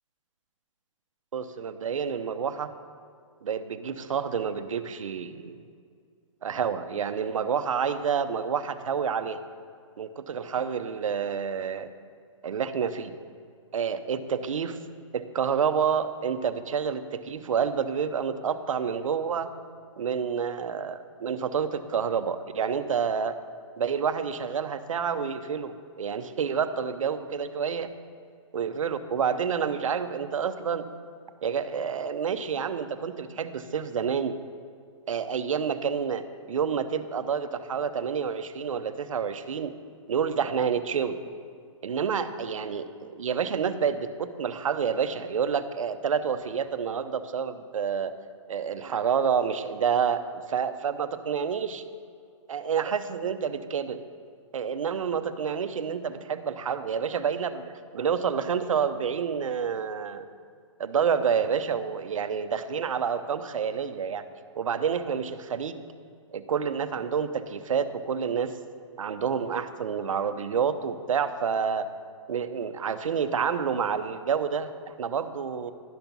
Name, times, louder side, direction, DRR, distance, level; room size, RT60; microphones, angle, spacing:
voice 1, 1.3-2.7 3.4-5.6 6.4-9.4 10.0-11.9 12.4-13.1 13.7-14.8 15.1-19.5 20.0-23.4 23.8-27.9 28.5-30.9 31.4-34.4 35.1-39.7 40.1-41.2 41.8-48.1 48.5-51.8 52.5-54.0 54.5-60.3 60.8-64.2 64.6-65.8 66.3-68.5 69.0-71.9 72.3-75.7, right 7 dB, 80° right, 11 dB, 0.7 m, -28 dB
11.5 x 6.0 x 5.3 m, 2.2 s
hypercardioid pair, 170°, 17 cm